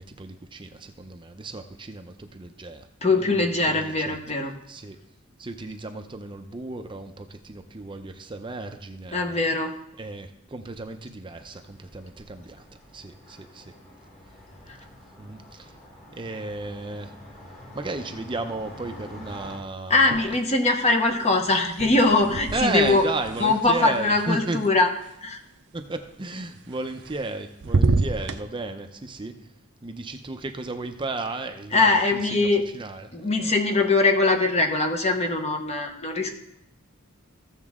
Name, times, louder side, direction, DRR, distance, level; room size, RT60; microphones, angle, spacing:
voice 1, 0.0-2.9 3.2-4.2 4.7-5.0 5.4-9.4 10.0-12.6 12.9-13.6 15.2-15.4 16.1-17.1 17.7-20.2 22.5-24.6 25.7-29.3 29.8-32.5 32.7-33.5, right 2 dB, 25° right, 6 dB, 0.6 m, -34 dB
voice 2, 3.0-4.5 9.1-9.7 19.9-23.0 23.4-24.9 25.2-25.4 31.7-32.6 33.1-36.3, left 3 dB, 30° left, 4 dB, 1.1 m, -22 dB
sound 1, 11.3-19.6, left 1 dB, 50° left, 3.8 m, -47 dB
sound 2, 20.0-20.7 21.0-25.1 26.7-27.3 27.6-28.4, right 3 dB, 60° right, 0.6 m, -28 dB
15.0 x 7.2 x 3.6 m, 0.83 s
head